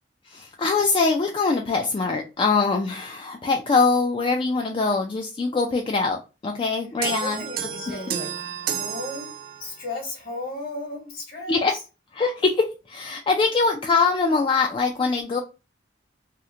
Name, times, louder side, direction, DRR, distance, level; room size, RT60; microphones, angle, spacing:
voice 1, 0.3-7.4 7.9-8.0 11.5-11.7 12.2-15.4, left 4 dB, 30° left, 2 dB, 0.3 m, -23 dB
voice 2, 7.0-9.3 9.6-11.6, left 2 dB, 55° left, 0 dB, 1.3 m, -35 dB
sound 1, 7.0-9.9, right 9 dB, 55° right, 0.4 m, -31 dB
2.8 x 2.1 x 3.6 m, 0.30 s
head